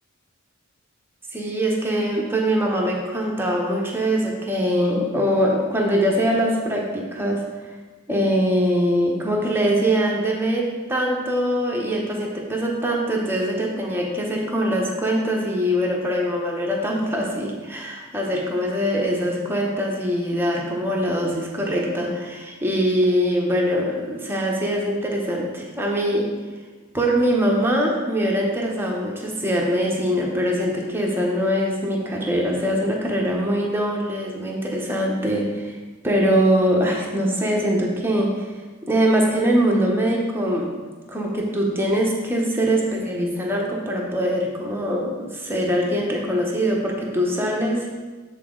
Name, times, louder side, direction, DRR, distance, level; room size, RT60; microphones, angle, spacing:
voice 1, 1.3-7.5 8.1-26.3 26.9-35.8 36.0-38.5 38.8-40.7 41.1-47.9, equal, 10° right, -1 dB, 0.9 m, -22 dB
8.1 x 4.0 x 3.8 m, 1.3 s
head